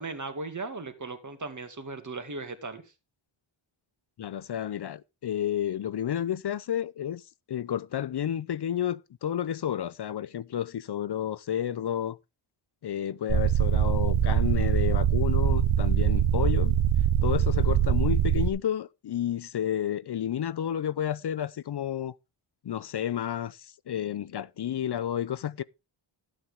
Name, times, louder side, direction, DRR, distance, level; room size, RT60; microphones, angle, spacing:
voice 1, 0.0-2.8, right 3 dB, 35° right, 2.2 m, -37 dB
voice 2, 4.2-7.2 7.5-12.2 12.8-16.7 17.2-22.1 22.6-23.6 23.9-25.6, left 10 dB, 55° left, 0.6 m, -31 dB
sound 1, 13.3-18.5, right 9 dB, 80° right, 0.8 m, -23 dB
12.5 x 8.8 x 3.6 m
cardioid pair, 60°, 49 cm